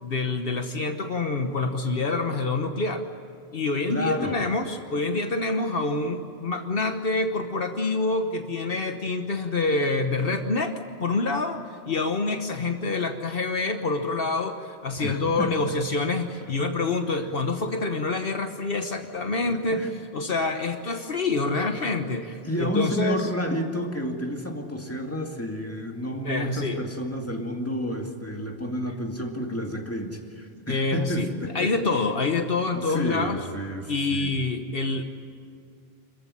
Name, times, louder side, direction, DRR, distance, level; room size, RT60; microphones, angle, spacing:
voice 1, 0.0-3.0 3.5-10.7 11.0-11.6 11.8-23.3 26.2-26.8 30.7-31.3 31.5-33.4 33.9-35.0, left 3 dB, 65° left, 6 dB, 1.4 m, -26 dB
voice 2, 3.9-4.4 15.0-15.7 19.5-20.0 22.4-31.7 32.7-34.3, equal, 15° left, 2 dB, 2.3 m, -30 dB
27.0 x 15.0 x 10.0 m, 2.4 s
omnidirectional pair, 1.0 m